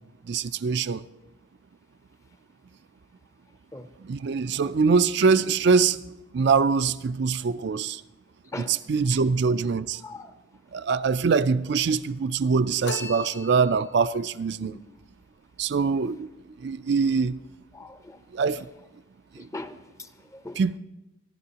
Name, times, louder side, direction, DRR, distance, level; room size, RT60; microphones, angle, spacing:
voice 1, 0.3-1.0 4.0-6.0 6.3-8.0 8.7-10.0 10.7-14.8 15.6-16.3 16.6-17.4 18.3-18.7 19.4-19.5 20.6-20.8, right 5 dB, 60° right, 0.4 m, -23 dB
voice 2, 10.0-10.3 14.6-14.8 17.7-18.2 19.4-20.6, left 2 dB, 15° left, 0.6 m, -40 dB
sound 1, 12.8-14.1, left 3 dB, 55° left, 0.9 m, -37 dB
27.0 x 11.5 x 2.9 m
head